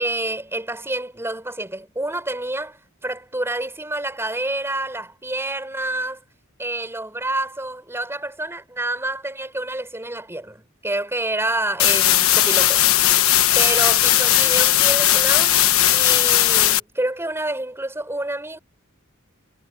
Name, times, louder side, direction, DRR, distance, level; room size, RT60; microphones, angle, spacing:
voice 1, 0.0-6.2 6.6-12.8 13.5-15.5 15.9-18.6, right 1 dB, 10° right, 5.4 m, -28 dB
sound 1, 11.8-16.8, left 13 dB, 70° left, 1.3 m, -17 dB
head